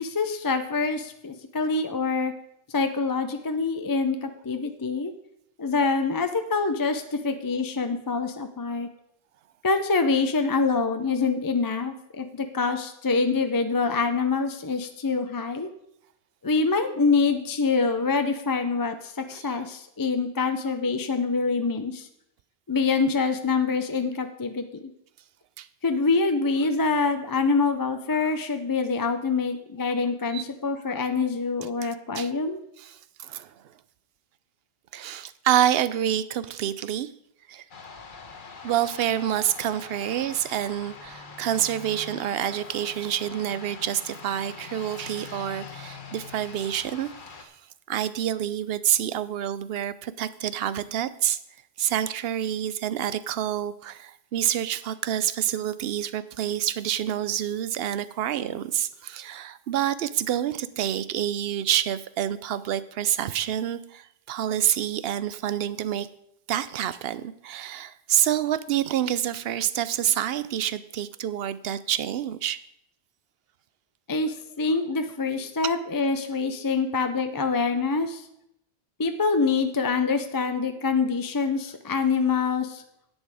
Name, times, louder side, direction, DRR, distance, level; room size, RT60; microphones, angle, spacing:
voice 1, 0.0-2.3 2.7-5.1 5.6-8.9 9.6-15.7 16.4-22.1 22.7-24.9 25.8-32.6 74.1-78.3 79.0-82.8, left 4 dB, 30° left, 7 dB, 0.4 m, -25 dB
voice 2, 19.3-19.7 25.6-25.7 30.3-30.4 31.8-31.9 32.1-32.3 32.8-33.5 34.9-37.1 37.5-37.6 38.6-47.1 47.4-47.5 47.9-51.4 51.8-66.1 66.5-72.6, right 10 dB, 70° right, 15 dB, 0.8 m, -27 dB
sound 1, 37.7-47.4, left 4 dB, 50° left, 1.2 m, -43 dB
10.5 x 8.1 x 4.8 m, 0.76 s
omnidirectional pair, 1.1 m